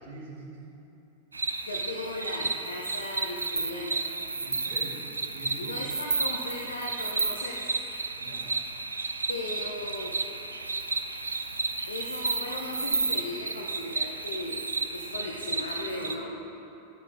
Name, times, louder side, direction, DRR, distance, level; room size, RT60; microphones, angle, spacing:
voice 1, 0.0-0.8 4.4-5.8 8.2-8.6, right 2 dB, 50° right, -5 dB, 1.8 m, -44 dB
sound 1, 1.3-16.1, right 3 dB, 80° right, 0.3 m, -32 dB
voice 2, 1.6-4.0 5.6-7.7 9.3-10.2 11.9-14.6 14.9-16.8, left 2 dB, 70° left, 0 dB, 0.6 m, -37 dB
12.0 x 6.8 x 2.5 m, 2.9 s
figure-of-eight pair, 90°, 0 cm